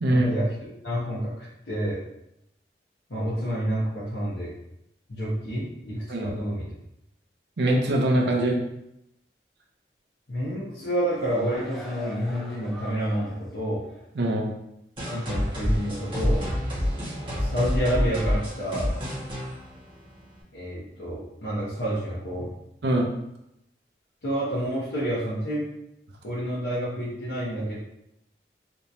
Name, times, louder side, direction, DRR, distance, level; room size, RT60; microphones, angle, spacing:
voice 1, 0.1-0.5 0.8-2.0 3.1-4.5 5.1-6.7 10.3-13.9 15.0-16.4 17.3-18.9 20.5-22.5 24.2-25.7 26.2-27.7, equal, 80° left, -8 dB, 0.9 m, -29 dB
voice 2, 7.6-8.6 14.2-14.5 22.8-23.1, right 1 dB, 75° right, -1 dB, 0.6 m, -22 dB
sound 1, 10.8-13.5 13.9-14.0, left 1 dB, ahead, 0.4 m, -43 dB
sound 2, 15.0-20.4, equal, 30° right, 1.2 m, -28 dB
3.5 x 2.9 x 2.6 m, 0.82 s
head